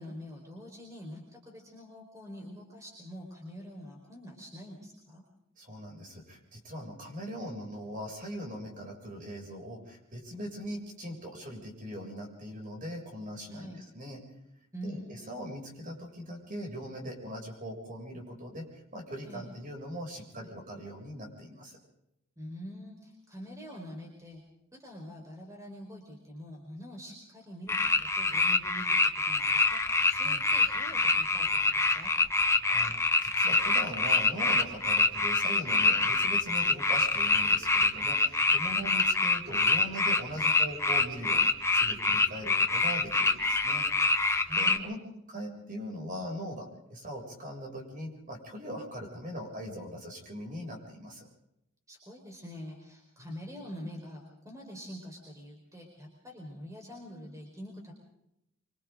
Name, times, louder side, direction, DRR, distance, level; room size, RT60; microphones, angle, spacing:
voice 1, 0.0-5.2 13.5-13.8 14.7-15.3 19.2-19.5 22.4-24.4 24.8-28.9 29.2-32.1 38.7-39.0 44.4-45.1 51.9-57.9, equal, 15° right, 0 dB, 4.7 m, -45 dB
voice 2, 5.6-14.2 14.8-21.8 30.2-30.4 32.4-43.9 44.6-45.0 45.3-51.3 53.2-53.4, equal, 40° right, 1 dB, 7.2 m, -41 dB
sound 1, 27.7-44.8, left 3 dB, 15° left, 1.2 m, -26 dB
26.5 x 26.0 x 3.9 m, 0.83 s
head